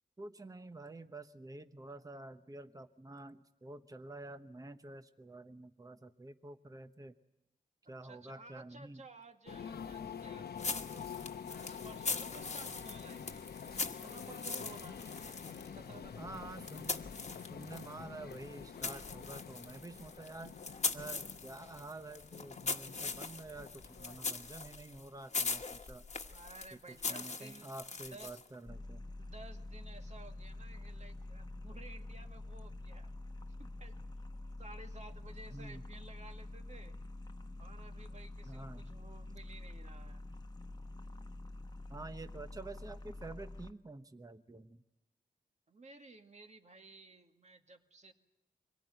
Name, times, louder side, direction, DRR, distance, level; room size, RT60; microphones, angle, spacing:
voice 1, 0.2-7.1 7.9-9.0 16.2-17.0 17.5-20.6 20.9-26.0 26.9-29.1 35.5-35.8 38.4-38.8 41.9-44.8, right 2 dB, 20° right, 9 dB, 1.0 m, -49 dB
voice 2, 7.8-11.1 11.6-15.0 15.7-16.4 26.3-28.4 29.2-33.1 33.6-34.0 34.6-37.0 37.6-40.2 45.7-48.1, right 3 dB, 45° right, 5 dB, 2.0 m, -55 dB
sound 1, 9.5-24.2, left 7 dB, 85° left, 0.9 m, -47 dB
sound 2, 10.6-18.0 18.3-28.5, left 4 dB, 45° left, 1.4 m, -41 dB
sound 3, 28.6-43.7, left 2 dB, 25° left, 1.0 m, -47 dB
24.0 x 17.5 x 9.2 m, 0.99 s
cardioid pair, 55°, 16 cm